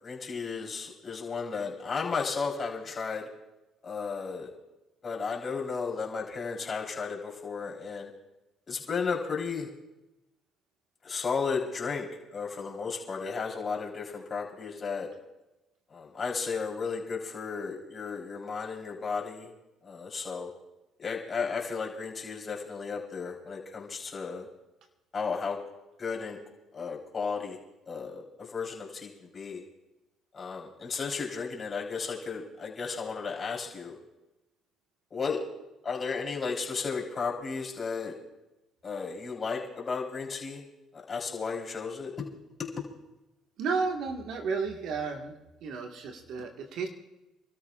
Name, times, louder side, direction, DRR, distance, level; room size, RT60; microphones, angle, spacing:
voice 1, 0.0-3.3 3.8-4.5 5.0-8.1 8.7-9.7 11.0-15.1 15.9-19.5 19.8-20.5 21.0-24.5 25.1-25.6 26.0-26.4 26.7-27.6 27.8-29.6 30.3-34.0 35.1-35.4 35.8-38.1 38.8-40.6 40.9-42.3 42.6-42.8, left 5 dB, 40° left, -2 dB, 3.9 m, -34 dB
voice 2, 43.6-45.3 45.6-46.9, right 4 dB, 70° right, 3 dB, 1.7 m, -32 dB
30.0 x 13.0 x 2.5 m, 1.0 s
supercardioid pair, 60°, 0 cm